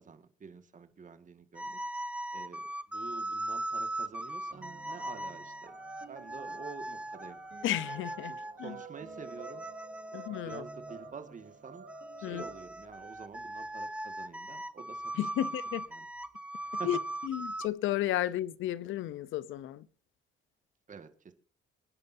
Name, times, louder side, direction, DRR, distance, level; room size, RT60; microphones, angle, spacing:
voice 1, 0.0-2.0 2.3-5.8 6.1-7.4 8.3-9.7 10.1-11.8 12.2-15.1 15.4-15.6 15.9-16.1 16.6-16.9 20.9-21.3, right 5 dB, 40° right, 1.9 m, -48 dB
sound 1, 1.6-11.1 11.9-17.7, right 1 dB, 5° right, 0.7 m, -39 dB
sound 2, 4.5-12.6, right 5 dB, 55° right, 3.7 m, -51 dB
voice 2, 7.6-8.3 8.6-8.8 10.1-10.6 12.2-12.4 15.2-15.8 16.8-19.9, left 13 dB, 85° left, 0.8 m, -33 dB
26.0 x 10.5 x 2.8 m
cardioid pair, 90°, 20 cm